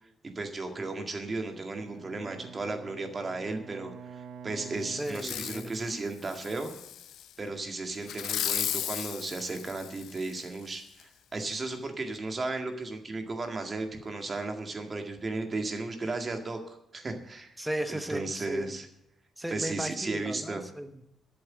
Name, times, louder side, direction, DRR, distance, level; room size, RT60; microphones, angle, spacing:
voice 1, 0.2-6.7 7.4-17.6 17.9-18.9 19.5-20.6, right 3 dB, 25° right, 5 dB, 1.9 m, -35 dB
Bowed string instrument, 1.5-5.8, right 6 dB, 75° right, 1.0 m, -47 dB
voice 2, 5.0-5.9 17.6-18.8 19.4-21.2, right 1 dB, 5° right, 8 dB, 1.0 m, -36 dB
Fireworks, 5.1-5.7 6.2-7.3 8.0-10.4 11.0-11.1, left 11 dB, 80° left, 0.5 m, -35 dB
12.0 x 7.9 x 7.4 m, 0.79 s
cardioid pair, 165°, 0 cm